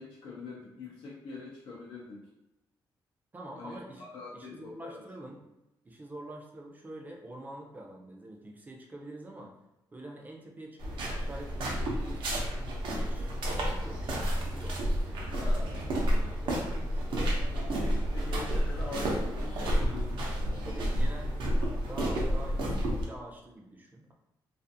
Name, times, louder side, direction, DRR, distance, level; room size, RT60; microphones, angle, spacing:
voice 1, 0.0-2.3 3.6-5.0 15.4-15.9 17.5-20.9 21.5-22.1, left 3 dB, 85° left, -5 dB, 0.5 m, -44 dB
voice 2, 3.3-4.0 4.3-5.4 5.8-9.5 9.9-12.5 12.9-14.8 15.5-17.0 20.5-24.1, right 1 dB, 20° right, 0 dB, 0.4 m, -46 dB
sound 1, 10.8-23.0, equal, 85° right, 0.6 m, -30 dB
2.4 x 2.4 x 2.6 m, 0.91 s
wide cardioid pair, 155°, 8 cm